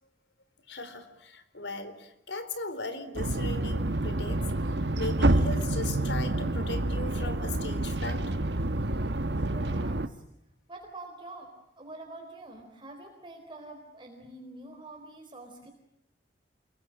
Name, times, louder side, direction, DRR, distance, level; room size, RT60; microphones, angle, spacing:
voice 1, 0.7-4.4 5.0-8.2, left 2 dB, 85° left, 11 dB, 4.0 m, -38 dB
sound 1, 3.2-10.1, right 1 dB, 70° right, 1.4 m, -28 dB
voice 2, 9.5-10.2 10.7-15.7, right 2 dB, 30° right, 2 dB, 4.2 m, -46 dB
29.0 x 22.0 x 8.9 m, 0.79 s
head